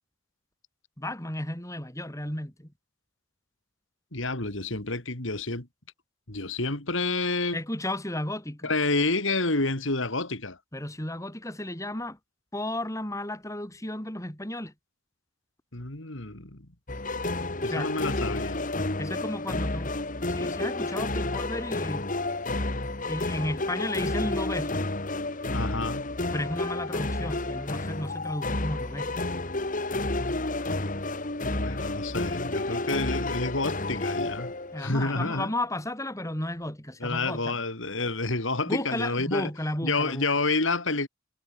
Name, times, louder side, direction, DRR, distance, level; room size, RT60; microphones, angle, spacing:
voice 1, 1.0-2.7 7.5-8.7 10.7-12.2 12.5-14.7 17.6-17.9 19.0-20.0 20.3-22.1 23.0-24.9 26.3-29.3 34.7-37.6 38.7-40.2, left 1 dB, 15° left, 3.8 m, -33 dB
voice 2, 4.1-5.7 6.3-7.6 8.6-10.6 15.7-16.7 17.6-18.6 25.5-26.0 31.6-34.5 34.8-35.5 37.0-39.5 39.8-41.1, left 3 dB, 70° left, 3.4 m, -29 dB
sound 1, 16.9-35.0, left 2 dB, 40° left, 2.0 m, -30 dB
head